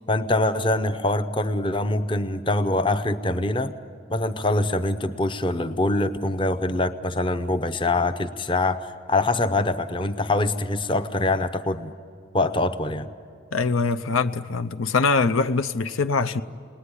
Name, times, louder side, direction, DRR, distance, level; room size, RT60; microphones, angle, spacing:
voice 1, 0.1-3.7 4.1-11.9 12.3-13.1, left 2 dB, 25° left, 0.7 m, -24 dB
voice 2, 13.5-16.4, left 4 dB, 80° left, 0.6 m, -23 dB
29.5 x 20.0 x 9.8 m
head